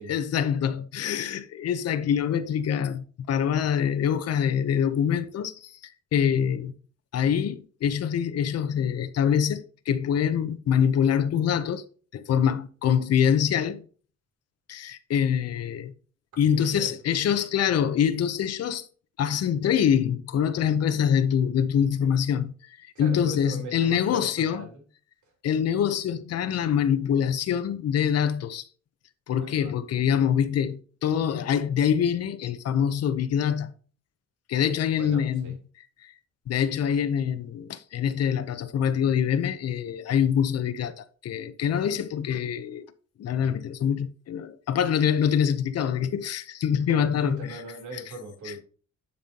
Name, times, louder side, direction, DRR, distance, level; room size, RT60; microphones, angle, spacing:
voice 1, 0.1-5.8 6.1-6.7 7.1-11.9 12.1-13.8 14.7-15.9 16.4-18.8 19.2-24.6 25.4-28.6 29.3-33.7 34.5-35.5 36.0-36.1 36.5-42.9 43.2-47.6 47.9-48.0 48.4-48.5, left 8 dB, 55° left, 0.8 m, -25 dB
voice 2, 16.4-17.3 23.0-24.8 29.4-29.8 35.0-35.6 46.9-48.6, right 2 dB, 80° right, 3.5 m, -40 dB
11.0 x 5.5 x 2.9 m
wide cardioid pair, 165°, 29 cm